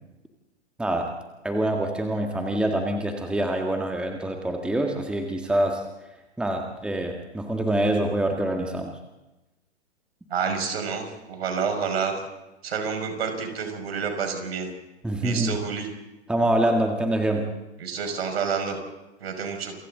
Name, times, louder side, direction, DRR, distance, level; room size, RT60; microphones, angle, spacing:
voice 1, 0.8-1.1 1.4-5.8 6.4-8.9 15.0-15.6 16.3-17.5, right 1 dB, 5° right, 2 dB, 1.8 m, -25 dB
voice 2, 10.3-12.1 12.6-14.7 15.2-15.9 17.8-18.8 19.2-19.7, right 6 dB, 60° right, 5 dB, 5.8 m, -29 dB
28.5 x 24.0 x 3.9 m, 1.0 s
figure-of-eight pair, 120°, 35 cm